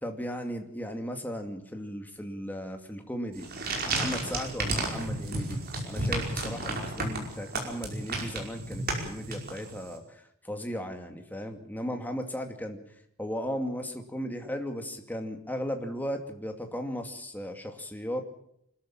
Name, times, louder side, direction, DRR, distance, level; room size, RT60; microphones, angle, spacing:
voice 1, 0.0-12.8 13.2-18.2, equal, 10° left, 4 dB, 2.5 m, -36 dB
sound 1, 3.3-9.9, right 2 dB, 45° right, 5.3 m, -32 dB
25.5 x 14.0 x 8.9 m, 0.73 s
head